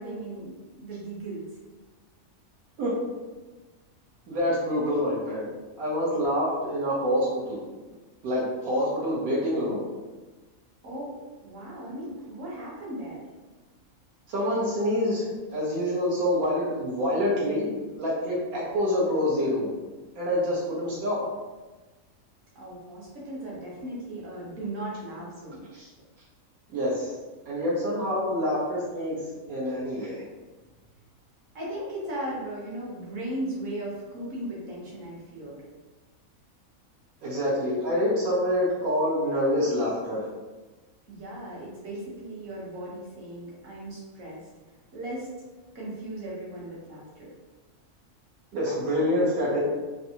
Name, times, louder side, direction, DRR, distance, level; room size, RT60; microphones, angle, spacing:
voice 1, 0.0-1.5 10.8-11.2 11.4-13.2 22.5-25.7 31.5-35.6 41.1-44.5 44.9-45.3 45.7-47.3, right 1 dB, 65° right, -5 dB, 1.3 m, -37 dB
voice 2, 4.3-5.5 5.8-7.6 8.2-9.9 14.3-19.7 20.1-21.2 25.7-25.9 26.7-27.1 27.5-30.2 37.2-40.3 48.5-49.6, equal, 85° right, -6 dB, 1.2 m, -26 dB
3.2 x 2.6 x 2.7 m, 1.2 s
omnidirectional pair, 1.5 m